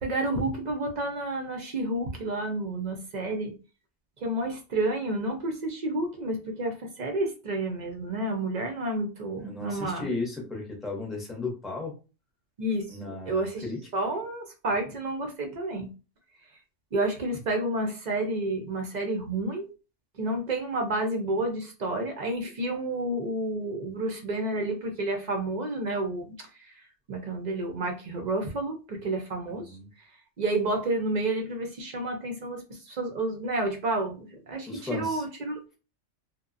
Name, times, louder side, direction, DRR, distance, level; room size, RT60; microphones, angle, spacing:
voice 1, 0.0-3.5 4.2-10.1 12.6-13.6 13.9-15.9 16.9-19.7 20.1-29.8 30.4-35.8, right 2 dB, 60° right, 3 dB, 0.4 m, -30 dB
voice 2, 9.2-11.9 12.9-13.8 29.5-29.9 34.7-35.2, left 3 dB, ahead, 0 dB, 0.5 m, -35 dB
2.8 x 2.1 x 2.4 m, 0.32 s
omnidirectional pair, 1.3 m